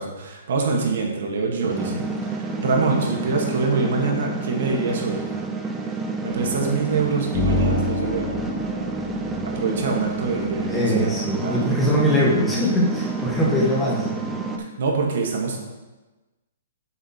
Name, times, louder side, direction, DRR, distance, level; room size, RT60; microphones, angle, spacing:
voice 1, 0.0-2.1 2.4-5.3 6.2-8.5 9.4-11.7 14.0-14.2 14.8-15.6, right 4 dB, 65° right, 0 dB, 1.7 m, -25 dB
voice 2, 1.6-2.0 10.6-14.1, equal, 10° left, -5 dB, 1.2 m, -22 dB
sound 1, 1.7-14.6, right 3 dB, 10° right, 0.5 m, -29 dB
sound 2, 6.3-11.3, left 2 dB, 30° left, 1.0 m, -29 dB
7.2 x 5.4 x 4.3 m, 1.2 s
hypercardioid pair, 170°, 0 cm